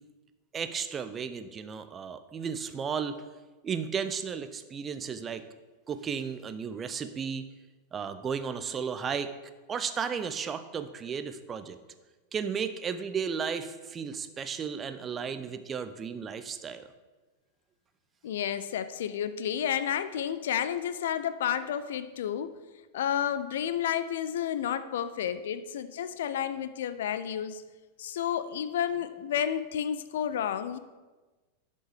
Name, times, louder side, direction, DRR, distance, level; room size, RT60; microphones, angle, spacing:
voice 1, 0.5-3.2 3.6-5.4 5.9-7.4 7.9-9.3 9.7-11.8 12.3-16.9, right 6 dB, 25° right, 10 dB, 0.5 m, -34 dB
voice 2, 18.2-22.6 22.9-27.6 28.0-30.8, left 9 dB, 60° left, 13 dB, 0.4 m, -31 dB
11.0 x 5.3 x 3.3 m, 1.2 s
figure-of-eight pair, 90°, 0 cm